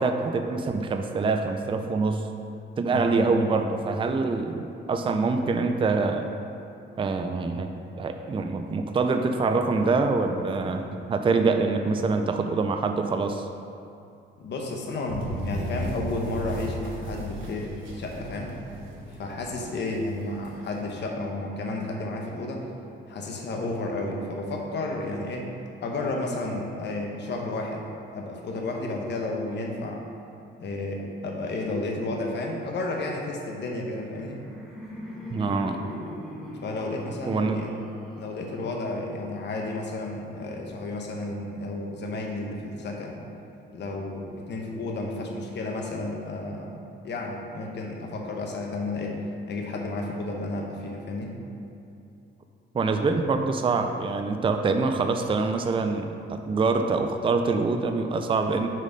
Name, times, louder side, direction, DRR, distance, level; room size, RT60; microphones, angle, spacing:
voice 1, 0.0-2.3 2.8-6.3 7.0-13.5 35.3-35.8 37.3-37.6 52.7-58.7, right 4 dB, 25° right, 6 dB, 0.4 m, -25 dB
voice 2, 2.9-3.3 14.4-18.5 19.1-22.6 23.1-25.5 25.8-27.9 28.1-30.0 30.6-34.4 36.6-37.7 38.2-43.2 43.7-49.2 49.5-51.3, left 2 dB, 60° left, 0 dB, 1.1 m, -32 dB
sound 1, 15.1-20.8, right 1 dB, 80° right, 1.2 m, -36 dB
Laughter, 33.9-38.9, left 1 dB, ahead, 1.6 m, -41 dB
6.4 x 4.1 x 5.2 m, 2.6 s
cardioid pair, 90°, 20 cm